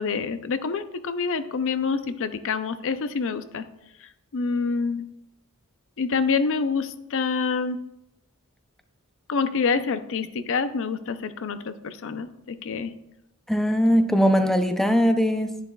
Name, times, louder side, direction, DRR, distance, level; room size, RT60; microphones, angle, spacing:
voice 1, 0.0-3.6 4.3-5.1 6.0-7.8 9.3-12.9, left 5 dB, 60° left, 11 dB, 0.5 m, -27 dB
voice 2, 13.5-15.6, equal, ahead, 6 dB, 0.5 m, -20 dB
10.5 x 10.0 x 2.3 m, 0.87 s
head